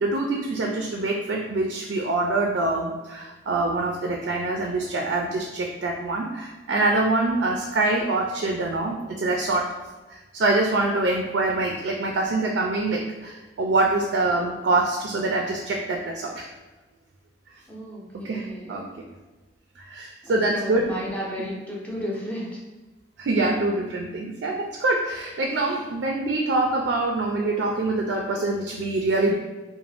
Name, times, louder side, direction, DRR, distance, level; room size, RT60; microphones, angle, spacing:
voice 1, 0.0-9.7 10.1-16.5 18.2-18.8 19.8-20.9 23.2-29.3, right 2 dB, 80° right, 1 dB, 0.4 m, -25 dB
voice 2, 17.7-18.8 20.2-22.6, equal, 10° left, -4 dB, 0.6 m, -33 dB
2.5 x 2.1 x 3.2 m, 1.1 s
head